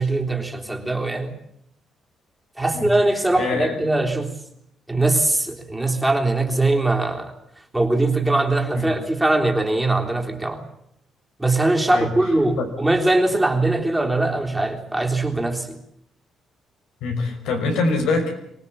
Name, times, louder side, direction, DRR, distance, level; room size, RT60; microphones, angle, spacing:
voice 1, 0.0-1.4 2.6-4.3 4.9-7.3 7.7-10.6 11.4-15.8, right 2 dB, 10° right, 2 dB, 3.5 m, -21 dB
voice 2, 3.4-3.7 8.7-8.9 11.9-12.1 12.6-12.7 17.0-18.4, left 3 dB, 90° left, 3 dB, 5.8 m, -24 dB
24.5 x 17.5 x 8.7 m, 0.73 s
cardioid pair, 90°, 0 cm